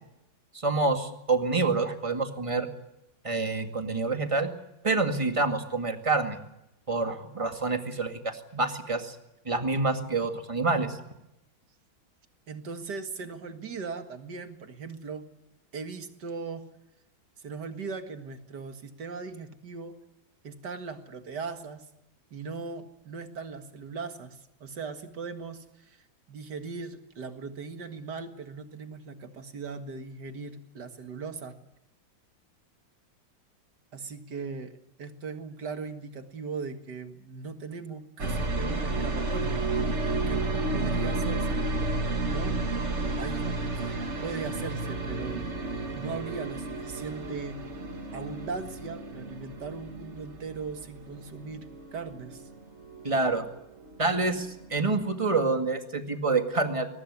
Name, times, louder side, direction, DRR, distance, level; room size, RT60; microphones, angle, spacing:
voice 1, 0.6-2.7 3.2-4.5 4.8-6.4 6.9-9.2 9.5-11.0 53.0-53.5 54.0-56.9, right 3 dB, 15° right, 6 dB, 2.0 m, -27 dB
voice 2, 12.5-15.2 15.7-16.7 17.4-20.0 20.4-21.9 22.3-26.0 26.3-31.6 33.9-39.7 40.1-40.5 40.7-41.7 42.3-42.6 43.2-43.5 43.7-47.7 48.1-52.5, right 4 dB, 55° right, 8 dB, 2.3 m, -39 dB
sound 1, 38.2-54.0 54.3-55.0, right 2 dB, 35° right, 2.4 m, -32 dB
22.5 x 19.5 x 9.8 m, 0.87 s
omnidirectional pair, 2.1 m